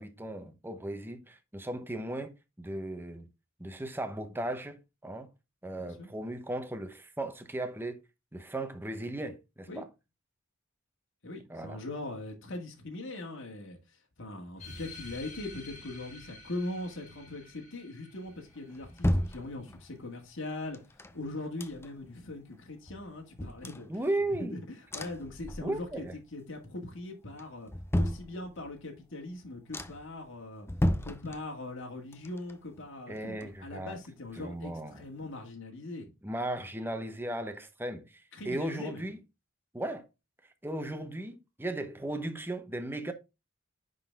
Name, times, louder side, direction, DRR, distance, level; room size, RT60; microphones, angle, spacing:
voice 1, 0.0-3.3 3.6-5.3 5.6-8.0 8.3-9.9 11.5-11.8 23.9-24.6 25.6-26.2 33.1-34.0 34.4-35.0 36.2-39.2 39.7-40.0 40.6-43.1, right 1 dB, 10° right, 0.9 m, -36 dB
voice 2, 5.8-6.1 9.7-9.8 11.2-13.8 14.2-20.8 21.1-24.0 24.3-26.0 26.3-30.7 31.0-36.1 38.3-39.0, left 2 dB, 65° left, 1.9 m, -41 dB
sound 1, 14.6-19.6, left 2 dB, 35° left, 3.8 m, -50 dB
sound 2, 18.3-20.0 20.7-22.2 22.5-22.6 22.9-24.5 24.9-26.1 26.4-26.9 27.4-28.8 29.3-29.4 29.7-30.2 30.6-31.8 32.1-33.9 34.2-34.3, equal, 10° left, 0.6 m, -34 dB
9.7 x 4.0 x 3.5 m
head